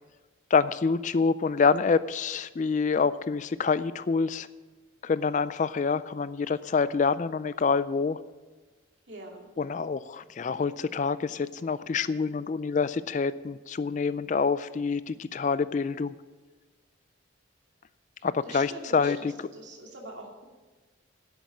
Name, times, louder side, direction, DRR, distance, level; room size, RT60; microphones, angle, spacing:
voice 1, 0.5-4.5 5.0-8.2 9.6-16.1 18.2-19.5, left 5 dB, 40° left, 15 dB, 0.3 m, -27 dB
voice 2, 9.1-9.5 18.5-19.3 19.5-20.5, right 2 dB, 60° right, 0 dB, 2.6 m, -43 dB
10.5 x 8.1 x 8.5 m, 1.3 s
head